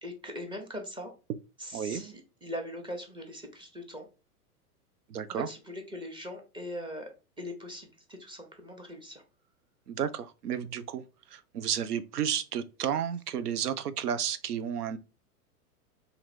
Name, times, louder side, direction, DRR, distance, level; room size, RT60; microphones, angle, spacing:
voice 1, 0.0-1.1 1.6-4.1 5.3-7.1 7.4-9.2, left 1 dB, 10° right, 0.8 m, -40 dB
voice 2, 5.1-5.5 9.9-11.0 11.3-15.0, right 8 dB, 90° right, 0.6 m, -32 dB
2.9 x 2.6 x 4.2 m
hypercardioid pair, 110°, 45 cm